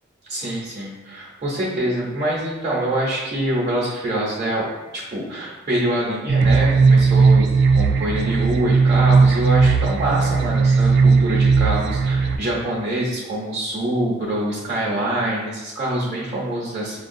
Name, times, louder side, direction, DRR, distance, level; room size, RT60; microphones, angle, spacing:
voice 1, 0.2-4.7 4.9-7.5 7.7-17.0, right 1 dB, 35° right, -8 dB, 0.8 m, -25 dB
sound 1, 6.3-12.4, right 4 dB, 55° right, 0.3 m, -16 dB
6.2 x 2.3 x 2.6 m, 1.1 s
head